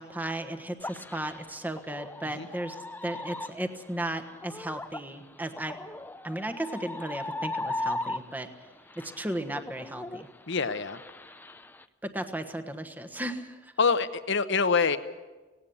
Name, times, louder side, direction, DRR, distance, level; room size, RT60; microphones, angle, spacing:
voice 1, 0.0-2.7 3.0-5.8 6.2-8.5 9.0-10.3 12.0-13.7, right 1 dB, 10° right, 6 dB, 1.3 m, -35 dB
sound 1, 0.8-8.6 8.9-11.8, left 2 dB, 10° left, 0.6 m, -38 dB
voice 2, 10.5-11.0 13.8-15.0, left 5 dB, 65° left, 11 dB, 1.0 m, -25 dB
18.0 x 17.5 x 8.5 m, 1.2 s
head